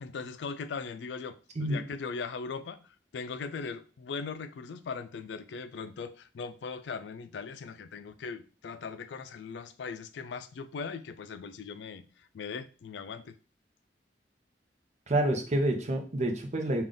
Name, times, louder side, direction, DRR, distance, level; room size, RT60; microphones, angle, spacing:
voice 1, 0.0-2.8 3.1-12.1 12.3-13.3, left 5 dB, 75° left, 0.4 m, -39 dB
voice 2, 15.1-16.8, right 1 dB, 40° right, 0.7 m, -28 dB
3.5 x 2.4 x 3.8 m
head